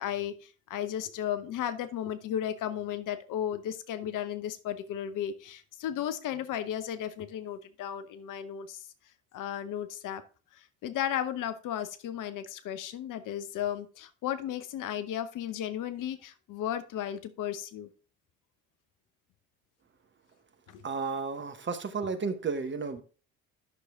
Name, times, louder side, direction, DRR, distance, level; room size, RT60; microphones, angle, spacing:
voice 1, 0.0-8.9 9.3-10.2 10.5-17.9 20.7-20.8, left 10 dB, 50° left, 12 dB, 0.9 m, -34 dB
voice 2, 20.8-23.0, right 4 dB, 25° right, 8 dB, 1.2 m, -33 dB
9.7 x 6.4 x 3.5 m, 0.37 s
figure-of-eight pair, 55°, 41 cm